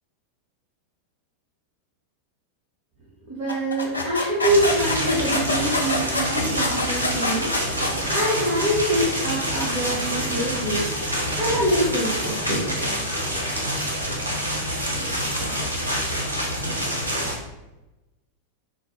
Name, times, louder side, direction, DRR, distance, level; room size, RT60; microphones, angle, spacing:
voice 1, 3.2-12.7, right 1 dB, 40° right, -8 dB, 1.0 m, -25 dB
sound 1, 3.5-8.3, left 2 dB, 80° left, 0.4 m, -26 dB
sound 2, 4.4-17.4, equal, 80° right, 0.7 m, -27 dB
3.7 x 2.1 x 3.0 m, 1.0 s
figure-of-eight pair, 90°, 0 cm